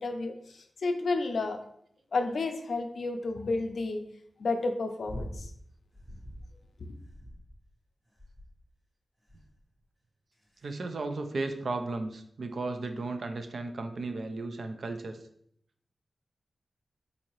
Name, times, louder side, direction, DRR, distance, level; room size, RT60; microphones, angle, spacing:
voice 1, 0.0-1.6 2.1-4.1 4.4-5.5, left 3 dB, 75° left, 6 dB, 0.4 m, -31 dB
sound 1, 5.0-5.5 5.9-6.5 7.0-7.7 8.2-8.6 9.3-9.6 10.3-10.7 11.6-11.7, equal, 30° right, 1.1 m, -43 dB
voice 2, 10.6-15.2, right 3 dB, 70° right, 7 dB, 0.4 m, -35 dB
3.8 x 2.6 x 3.0 m, 0.68 s
wide cardioid pair, 95°, 0 cm